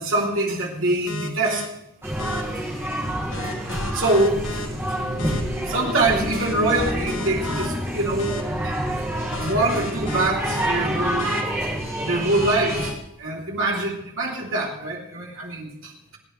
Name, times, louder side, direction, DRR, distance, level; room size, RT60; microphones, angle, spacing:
voice 1, 0.0-1.6 3.9-4.4 5.7-8.3 8.6-8.7 9.4-11.4 12.0-16.2, right 2 dB, 60° right, -2 dB, 3.2 m, -24 dB
sound 1, 1.1-1.6 2.2-2.4 3.3-4.7 5.2-5.4 6.3-7.7 8.2-8.4 9.3-10.7 11.2-11.4 12.3-12.9, left 2 dB, 60° left, 1.6 m, -33 dB
sound 2, 2.0-12.9, equal, 10° right, 1.9 m, -27 dB
26.5 x 9.4 x 3.2 m, 0.81 s
head